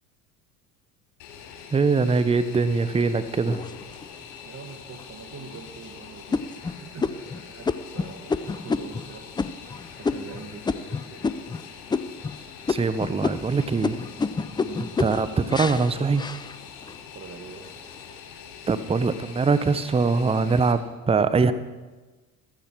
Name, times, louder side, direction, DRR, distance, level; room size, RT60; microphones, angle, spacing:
Fixed-wing aircraft airplane, 1.2-20.7, left 7 dB, 65° left, 2.9 m, -44 dB
voice 1, 1.7-3.6 12.7-14.0 15.0-16.2 18.7-21.5, right 4 dB, 10° right, 13 dB, 0.8 m, -22 dB
sound 1, 3.5-4.3 4.9-5.0 5.5-5.8 6.3-11.6 11.9-12.4 12.7-17.0 17.5-18.0, left 4 dB, 10° left, 0.4 m, -30 dB
voice 2, 4.5-6.5 6.8-9.3 9.6-11.3 14.6-14.9 17.1-17.7, right 5 dB, 30° right, 5 dB, 1.8 m, -43 dB
15.0 x 14.0 x 4.6 m, 1.3 s
hypercardioid pair, 75°, 47 cm